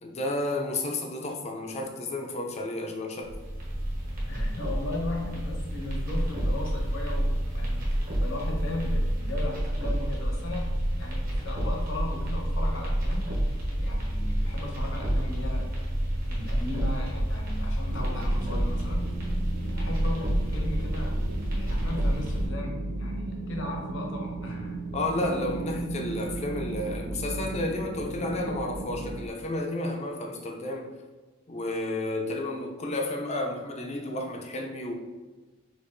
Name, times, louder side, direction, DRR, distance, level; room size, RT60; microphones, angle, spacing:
voice 1, 0.0-3.3 24.9-30.9 31.5-34.9, left 2 dB, 30° left, 2 dB, 0.5 m, -31 dB
sound 1, 3.2-22.5, equal, 45° right, 1.2 m, -29 dB
voice 2, 4.3-7.8 8.2-10.7 11.0-13.3 13.8-15.7 16.3-19.0 19.7-21.2 21.5-24.8, left 2 dB, 60° left, 0 dB, 0.9 m, -37 dB
sound 2, 17.9-29.3, right 2 dB, 90° right, 0.5 m, -36 dB
6.4 x 2.5 x 2.6 m, 1.3 s
head